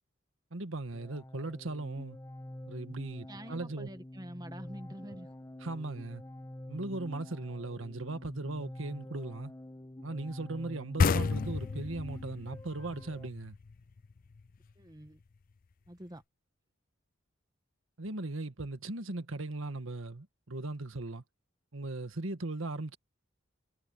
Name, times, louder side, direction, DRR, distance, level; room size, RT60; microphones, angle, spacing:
voice 1, 0.5-2.2 2.7-3.9 5.6-6.2 6.7-9.5 10.0-13.6 18.0-21.2 21.7-23.0, right 2 dB, 80° right, 1.6 m, -38 dB
sound 1, 0.9-13.3, left 1 dB, 15° left, 1.2 m, -47 dB
voice 2, 3.3-5.3 14.8-15.2 15.9-16.2, right 1 dB, 20° right, 1.4 m, -46 dB
sound 2, 11.0-14.4, left 5 dB, 45° left, 0.4 m, -31 dB
head